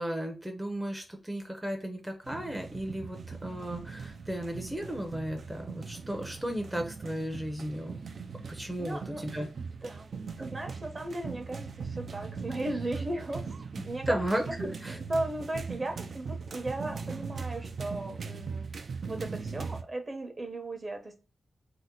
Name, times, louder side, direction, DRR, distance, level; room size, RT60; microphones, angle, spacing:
voice 1, 0.0-8.0 8.5-9.5 13.7-14.4 14.8-15.0, equal, 10° right, 0.5 m, -35 dB
sound 1, 2.2-19.8, right 5 dB, 70° right, 0.3 m, -40 dB
voice 2, 8.8-9.3 9.8-10.1 10.4-13.5 13.8-18.7 19.0-21.2, right 1 dB, 40° right, 0.8 m, -36 dB
2.7 x 2.1 x 3.7 m
cardioid pair, 55°, 0 cm